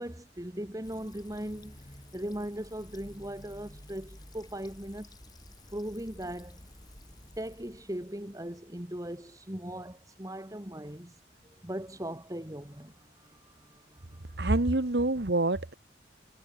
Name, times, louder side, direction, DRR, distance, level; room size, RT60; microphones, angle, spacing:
voice 1, 0.0-5.1 5.7-6.6 7.4-14.4, right 1 dB, 20° right, 2.1 m, -39 dB
Fill (with liquid), 0.8-8.5, left 1 dB, 20° left, 6.9 m, -52 dB
voice 2, 14.4-15.7, right 2 dB, 65° right, 1.4 m, -26 dB
head